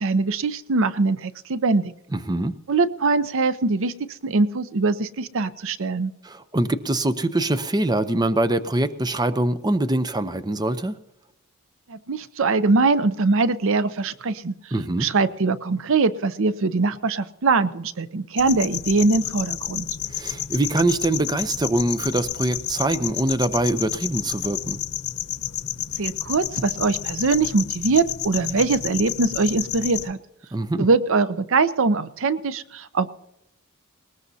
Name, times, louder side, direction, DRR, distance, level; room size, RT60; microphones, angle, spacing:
voice 1, 0.0-1.9 2.7-6.1 11.9-14.5 15.0-19.9 26.0-30.2 30.8-33.1, right 3 dB, 65° right, 14 dB, 0.6 m, -22 dB
voice 2, 2.1-2.6 6.2-11.0 14.7-15.1 20.1-24.8 30.5-30.9, right 1 dB, 20° right, 11 dB, 0.6 m, -23 dB
sound 1, 18.4-30.1, left 11 dB, 85° left, 0.9 m, -30 dB
19.5 x 19.5 x 2.8 m, 0.84 s
head